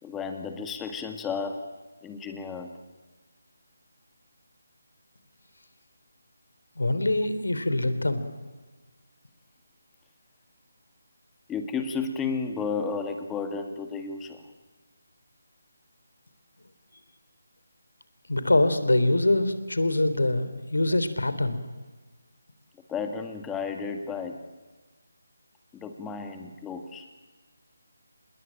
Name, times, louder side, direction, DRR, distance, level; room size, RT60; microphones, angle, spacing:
voice 1, 0.0-1.6 2.0-2.7 11.5-14.5 22.9-24.4 25.7-27.1, left 5 dB, 10° left, 5 dB, 2.0 m, -33 dB
voice 2, 6.8-8.2 18.3-21.6, left 2 dB, 75° left, 11 dB, 3.5 m, -24 dB
27.0 x 21.0 x 9.1 m, 1.3 s
figure-of-eight pair, 155°, 0 cm